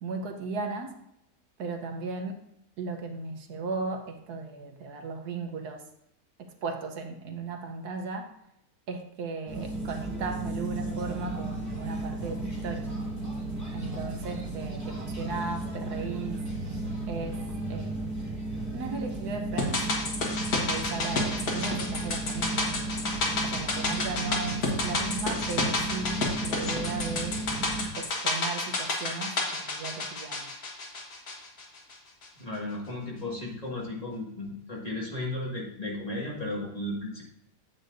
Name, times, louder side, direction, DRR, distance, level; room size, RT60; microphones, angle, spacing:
voice 1, 0.0-0.9 1.6-2.4 2.8-5.8 6.4-8.3 8.9-13.0 13.7-16.4 17.1-17.4 17.7-18.3 18.7-19.8 20.5-22.7 23.4-27.4 28.0-30.5, right 4 dB, 80° right, 5 dB, 1.4 m, -36 dB
sound 1, 9.5-27.9, right 2 dB, 10° right, 2.1 m, -34 dB
sound 2, 19.6-31.9 32.2-32.3, left 2 dB, 80° left, 2.1 m, -30 dB
voice 2, 32.4-37.2, left 1 dB, 25° left, -4 dB, 2.0 m, -35 dB
9.5 x 7.9 x 2.6 m, 0.78 s
omnidirectional pair, 1.7 m